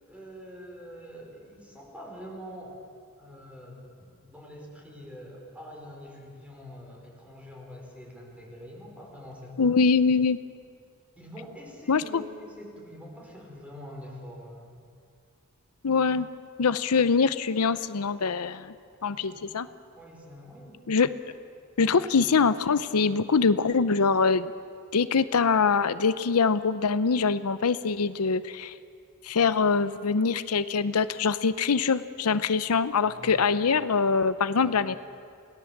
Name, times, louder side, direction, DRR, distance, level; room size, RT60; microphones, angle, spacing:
voice 1, 0.1-2.8 3.2-9.8 11.2-14.8 19.0-19.5 19.9-20.8 33.0-33.8 34.6-34.8, equal, 5° right, -1 dB, 4.8 m, -45 dB
voice 2, 9.6-10.4 11.9-12.2 15.8-16.3 16.6-18.7 19.0-19.7 20.9-21.1 21.8-24.5 24.9-28.7 29.2-35.0, left 5 dB, 85° left, 14 dB, 0.7 m, -24 dB
28.5 x 18.0 x 7.3 m, 2.3 s
head